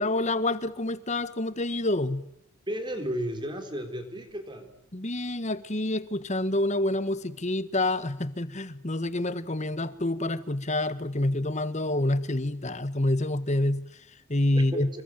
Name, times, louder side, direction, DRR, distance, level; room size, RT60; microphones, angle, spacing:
voice 1, 0.0-2.2 4.9-15.0, left 1 dB, 30° left, 1.4 m, -28 dB
voice 2, 2.7-4.7 14.5-15.0, equal, 20° right, 3.9 m, -34 dB
27.5 x 23.5 x 9.2 m
head